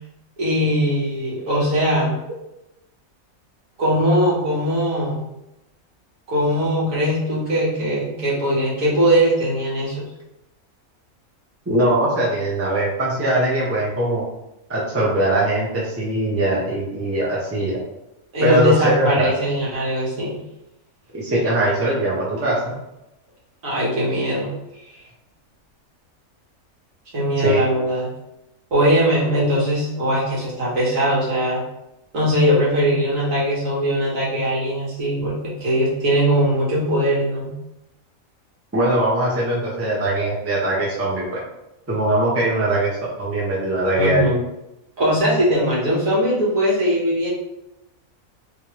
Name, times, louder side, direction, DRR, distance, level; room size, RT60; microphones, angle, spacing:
voice 1, 0.4-2.2 3.8-5.3 6.3-10.0 18.3-20.4 23.6-24.5 27.1-28.1 28.7-31.6 32.1-37.5 44.0-44.4 45.0-47.3, equal, 70° right, -6 dB, 1.7 m, -20 dB
voice 2, 11.7-14.2 14.7-17.8 18.4-19.4 21.1-22.8 24.9-25.0 27.4-27.6 38.7-41.4 41.9-42.9 43.2-44.3, right 1 dB, 15° right, -5 dB, 0.6 m, -21 dB
3.2 x 3.1 x 3.0 m, 0.90 s
omnidirectional pair, 1.5 m